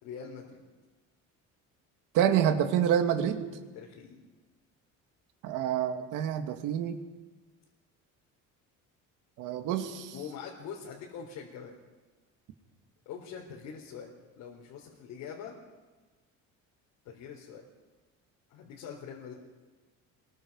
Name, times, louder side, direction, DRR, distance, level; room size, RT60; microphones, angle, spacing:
voice 1, 0.0-0.6 3.7-4.2 10.1-11.7 13.1-14.1 14.4-15.6 17.0-17.6 18.5-19.4, left 7 dB, 75° left, -2 dB, 4.0 m, -43 dB
voice 2, 2.1-3.5 5.4-7.0 9.4-10.1, right 9 dB, 75° right, 6 dB, 2.3 m, -27 dB
26.5 x 22.5 x 5.5 m, 1.3 s
cardioid pair, 165°, 31 cm